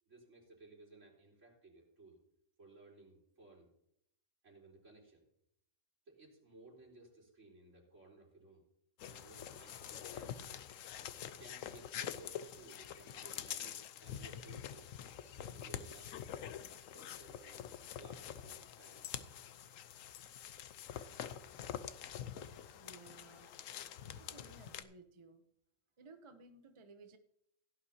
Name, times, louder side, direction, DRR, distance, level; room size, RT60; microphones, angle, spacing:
voice 1, 0.1-2.2 2.6-3.7 4.4-5.3 6.1-8.6 9.0-10.6 11.2-14.9 15.4-19.1, right 2 dB, 70° right, -3 dB, 4.3 m, -59 dB
sound 1, 9.0-24.8, left 9 dB, 90° left, 1.1 m, -46 dB
voice 2, 22.7-23.5 24.2-25.4 26.0-27.2, right 3 dB, 30° right, 8 dB, 0.7 m, -58 dB
17.0 x 11.0 x 2.8 m, 0.73 s
omnidirectional pair, 1.3 m